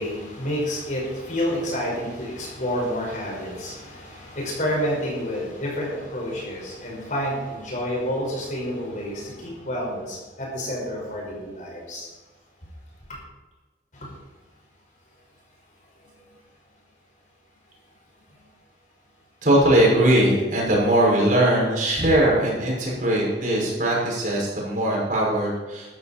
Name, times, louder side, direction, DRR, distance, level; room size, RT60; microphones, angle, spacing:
voice 1, 0.0-12.1 13.9-14.1, equal, 45° left, -2 dB, 5.3 m, -29 dB
voice 2, 19.4-26.0, right 1 dB, 50° right, -4 dB, 5.8 m, -20 dB
14.0 x 13.5 x 4.3 m, 1.2 s
head